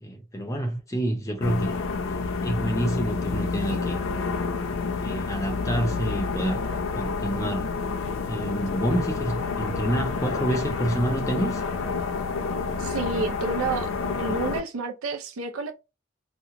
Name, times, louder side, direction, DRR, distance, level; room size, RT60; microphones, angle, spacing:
voice 1, 0.0-2.2 2.4-4.0 5.0-6.7 6.9-7.7 8.3-11.6, right 1 dB, 15° left, 0.5 m, -28 dB
sound 1, 1.4-14.6, left 4 dB, 75° left, 0.5 m, -29 dB
voice 2, 12.8-13.9 14.2-15.7, right 4 dB, 85° right, 0.5 m, -30 dB
2.9 x 2.1 x 3.7 m
head